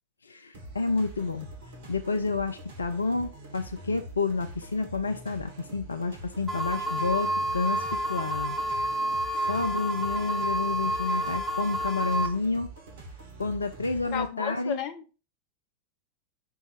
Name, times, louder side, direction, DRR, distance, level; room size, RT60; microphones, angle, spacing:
voice 1, 0.2-1.5 1.9-8.6 9.5-12.7 13.4-14.8, left 3 dB, 75° left, 0.5 m, -30 dB
sound 1, 0.5-14.3, right 1 dB, 60° right, 1.7 m, -45 dB
sound 2, 6.5-12.3, right 1 dB, 10° right, 1.3 m, -29 dB
voice 2, 14.1-15.2, left 8 dB, 40° left, 0.8 m, -33 dB
5.4 x 4.6 x 4.5 m
figure-of-eight pair, 90°, 0 cm